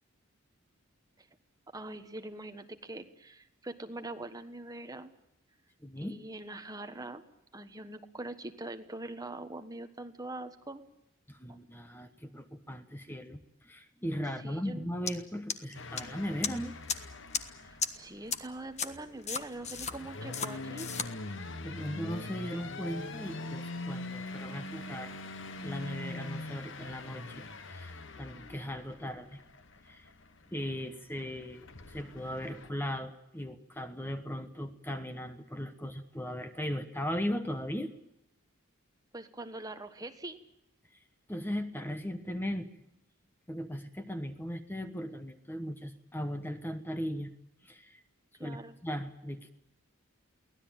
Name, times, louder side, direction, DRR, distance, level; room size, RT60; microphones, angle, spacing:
voice 1, 1.7-5.1 6.0-7.2 7.5-10.8 11.5-11.6 14.4-14.9 17.6-20.9 39.1-40.4 48.4-48.7, right 2 dB, 15° right, 8 dB, 1.3 m, -43 dB
voice 2, 5.8-6.2 11.3-16.8 21.6-25.1 25.6-29.4 29.8-30.0 30.5-37.9 41.3-42.7 43.5-47.3 47.6-48.0 48.4-49.5, equal, 10° left, 8 dB, 1.2 m, -38 dB
sound 1, 15.1-15.2 15.5-16.0 16.4-16.5 16.9-17.0 17.3-17.4 17.8-17.9 18.3-18.4 18.8-18.9 19.3-19.9 20.3-20.5 20.8-21.1, left 6 dB, 30° left, 1.4 m, -32 dB
sound 2, 15.7-32.7, left 2 dB, 60° left, 1.3 m, -43 dB
23.5 x 18.0 x 8.9 m, 0.82 s
head